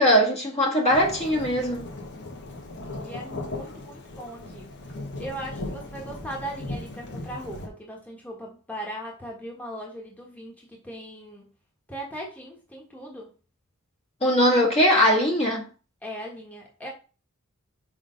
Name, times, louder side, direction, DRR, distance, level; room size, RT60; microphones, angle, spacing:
voice 1, 0.0-1.9 14.2-15.6, equal, 30° left, 1.6 m, -20 dB
Thunderstorm / Rain, 0.9-7.7, left 2 dB, 55° left, 1.2 m, -37 dB
voice 2, 3.0-4.7 5.2-11.5 11.9-13.3 16.0-16.9, right 1 dB, 5° left, 1.5 m, -38 dB
6.3 x 3.4 x 5.2 m
head